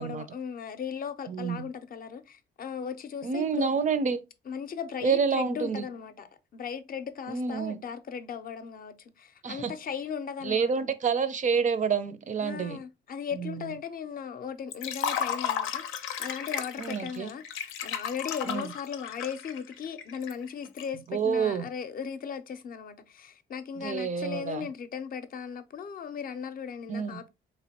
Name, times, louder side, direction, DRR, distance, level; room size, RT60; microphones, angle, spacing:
voice 1, 0.0-3.7 4.5-6.3 6.5-10.8 12.4-27.3, left 7 dB, 45° left, 0.6 m, -37 dB
voice 2, 1.3-1.7 3.2-4.2 5.0-5.9 7.3-7.8 9.4-9.7 10.4-12.8 13.3-13.7 16.8-17.3 18.4-18.7 21.1-21.7 23.8-24.7 26.9-27.2, right 6 dB, 40° right, 0.5 m, -28 dB
Liquid, 14.7-20.8, left 8 dB, 90° left, 0.6 m, -34 dB
3.7 x 3.0 x 2.8 m
cardioid pair, 90°, 20 cm